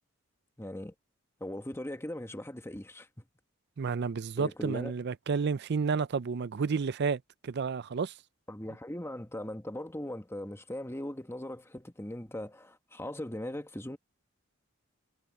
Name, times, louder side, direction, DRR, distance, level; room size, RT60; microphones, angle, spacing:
voice 1, 0.6-0.9 1.4-3.1 4.4-4.9 8.5-14.0, left 1 dB, 15° left, 1.5 m, -39 dB
voice 2, 3.8-8.1, right 5 dB, 55° right, 0.5 m, -31 dB
head